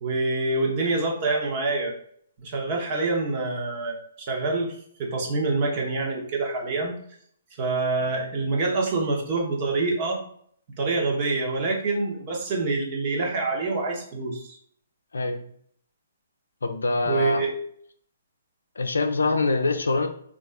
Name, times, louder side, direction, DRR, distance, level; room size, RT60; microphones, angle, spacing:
voice 1, 0.0-1.9 2.4-7.0 7.6-10.2 10.8-14.6 17.1-17.5, right 3 dB, 35° right, 0 dB, 1.0 m, -26 dB
voice 2, 15.1-15.4 16.6-17.4 18.8-20.1, left 3 dB, 70° left, 6 dB, 0.5 m, -24 dB
4.0 x 2.5 x 3.6 m, 0.63 s
figure-of-eight pair, 125°, 0 cm